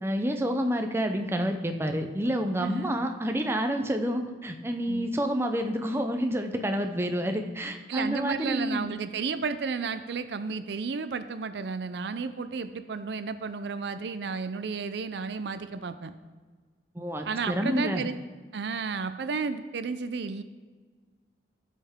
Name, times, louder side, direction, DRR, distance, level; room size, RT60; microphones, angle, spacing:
voice 1, 0.0-8.9 17.0-18.0, equal, 15° right, 5 dB, 0.6 m, -29 dB
voice 2, 2.6-3.0 4.9-5.1 7.9-16.1 17.2-18.1 18.5-20.4, right 5 dB, 70° right, 11 dB, 0.4 m, -32 dB
14.5 x 5.5 x 3.6 m, 1.5 s
head